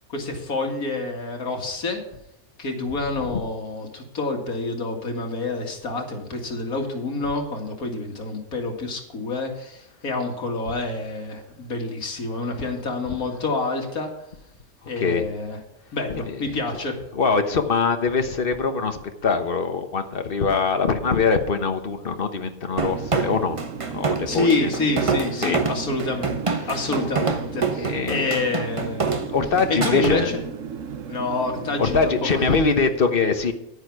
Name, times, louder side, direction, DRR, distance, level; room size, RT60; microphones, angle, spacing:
voice 1, 0.1-2.0 2.6-14.1 14.9-15.6 15.9-17.0 24.2-29.2 29.7-30.4 31.1-32.0 32.3-32.5, left 3 dB, 80° left, 2 dB, 2.5 m, -27 dB
voice 2, 17.1-23.6 23.9-24.7 25.4-25.6 27.8-28.3 29.3-30.3 31.8-33.5, left 5 dB, 40° left, 7 dB, 1.2 m, -23 dB
sound 1, 22.8-30.2, right 4 dB, 25° right, 0.8 m, -26 dB
sound 2, 22.9-32.3, right 6 dB, 65° right, 1.3 m, -35 dB
10.5 x 9.7 x 4.7 m, 0.86 s
omnidirectional pair, 1.5 m